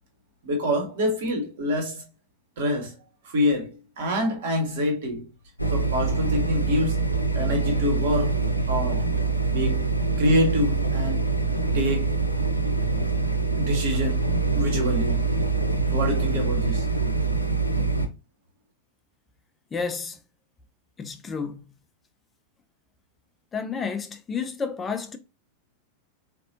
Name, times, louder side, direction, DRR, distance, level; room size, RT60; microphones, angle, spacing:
voice 1, 0.4-2.0 2.6-2.9 3.2-3.7 4.0-5.2 5.7-8.3 8.7-9.0 9.5-9.8 10.2-11.3 11.7-12.2 13.6-15.2 15.9-16.8, left 1 dB, 55° right, 1.3 m, -26 dB
sound 1, 5.6-18.1, right 4 dB, 85° left, 0.5 m, -24 dB
voice 2, 19.7-20.2 21.0-21.6 23.5-25.2, left 5 dB, 20° left, 0.4 m, -31 dB
4.0 x 2.5 x 2.7 m
figure-of-eight pair, 90°, 0 cm